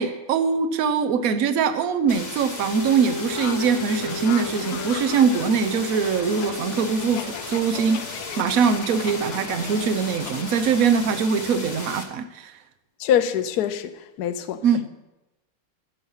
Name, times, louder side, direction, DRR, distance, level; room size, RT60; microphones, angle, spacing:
voice 1, 0.0-12.5 14.6-14.9, right 6 dB, 60° right, 0.9 m, -22 dB
sound 1, 2.1-12.0, left 2 dB, 25° left, 1.1 m, -36 dB
Wind instrument woodwind instrument, 2.6-7.7, left 3 dB, 85° right, 1.9 m, -35 dB
sound 2, 3.3-11.3, left 12 dB, 80° left, 1.5 m, -38 dB
voice 2, 13.0-14.6, left 9 dB, 65° left, 1.0 m, -24 dB
14.5 x 7.0 x 5.6 m
omnidirectional pair, 2.4 m